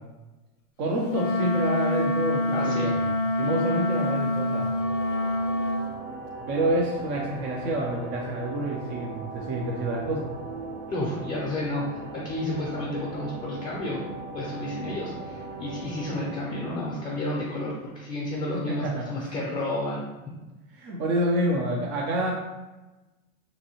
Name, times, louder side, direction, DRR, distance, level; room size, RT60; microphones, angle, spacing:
voice 1, 0.8-3.0 3.4-4.7 6.5-10.3 18.5-19.1 20.8-22.3, right 1 dB, 30° right, -1 dB, 0.4 m, -28 dB
Wind instrument woodwind instrument, 1.1-5.9, left 1 dB, 65° left, 0.5 m, -26 dB
voice 2, 2.5-2.9 10.9-14.1 14.3-20.0, left 1 dB, 20° left, -4 dB, 0.5 m, -31 dB
sound 1, 4.6-18.2, right 3 dB, 85° right, 0.9 m, -39 dB
2.8 x 2.6 x 2.7 m, 1.1 s
hypercardioid pair, 110°, 41 cm